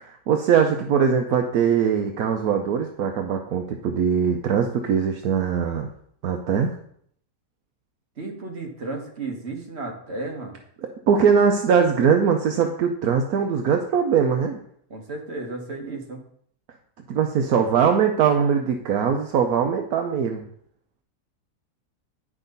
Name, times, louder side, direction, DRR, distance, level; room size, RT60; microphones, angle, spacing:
voice 1, 0.0-5.9 6.2-6.8 10.8-14.6 17.1-20.5, right 7 dB, 70° right, 4 dB, 1.2 m, -21 dB
voice 2, 8.2-10.6 14.9-16.2, right 3 dB, 45° right, 2 dB, 1.7 m, -33 dB
9.9 x 6.2 x 4.0 m, 0.65 s
omnidirectional pair, 1.7 m